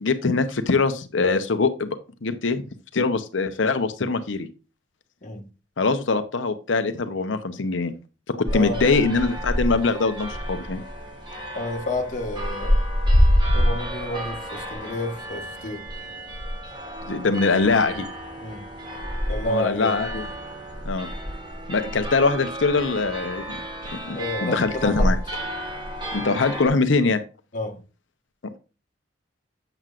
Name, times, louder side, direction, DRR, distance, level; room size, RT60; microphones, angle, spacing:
voice 1, 0.0-2.6 2.9-4.5 5.8-7.9 8.3-10.8 17.0-18.1 19.5-20.3 20.8-21.1 21.7-23.6 23.9-25.2 26.1-27.2, left 4 dB, 90° left, 0.8 m, -23 dB
voice 2, 8.5-8.9 11.5-12.8 13.5-15.9 18.4-18.7 19.3-20.0 24.1-25.1 27.5-27.8, left 1 dB, 45° left, 1.3 m, -30 dB
sound 1, 8.5-26.7, equal, 25° right, 1.5 m, -27 dB
7.8 x 7.5 x 2.4 m
head